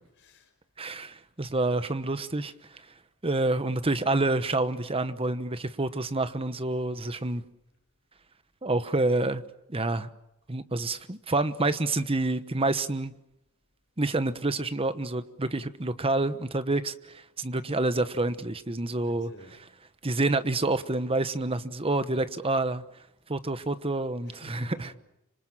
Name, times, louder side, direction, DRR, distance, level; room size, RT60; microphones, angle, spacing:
voice 1, 0.2-0.5 19.0-19.6 24.2-25.0, left 1 dB, 55° left, 6.2 m, -51 dB
voice 2, 0.8-2.5 3.2-7.4 8.6-9.4 9.7-10.1 10.5-13.1 14.0-19.3 20.0-22.8 23.3-24.9, right 2 dB, 25° right, 1.1 m, -28 dB
27.0 x 26.0 x 7.5 m
head